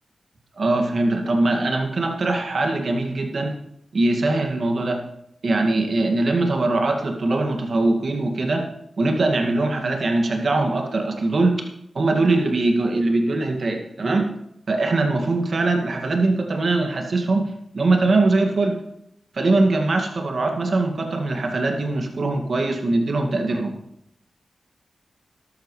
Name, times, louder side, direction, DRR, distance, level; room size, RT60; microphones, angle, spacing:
voice 1, 0.6-3.6 3.9-5.0 5.4-8.6 9.0-11.6 11.9-14.3 14.7-17.5 17.7-18.8 19.3-23.7, right 2 dB, 65° right, 2 dB, 2.1 m, -21 dB
13.0 x 12.5 x 3.3 m, 0.78 s
cardioid pair, 70°, 0 cm